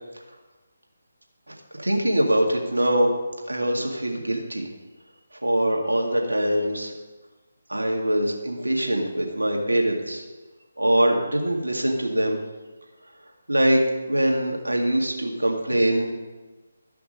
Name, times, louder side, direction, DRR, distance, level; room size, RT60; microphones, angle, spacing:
voice 1, 1.5-3.1 3.5-4.7 5.4-6.9 7.7-10.2 10.8-12.4 13.5-16.1, right 1 dB, 90° right, 1 dB, 2.0 m, -23 dB
13.5 x 5.9 x 5.2 m, 1.2 s
figure-of-eight pair, 150°, 0 cm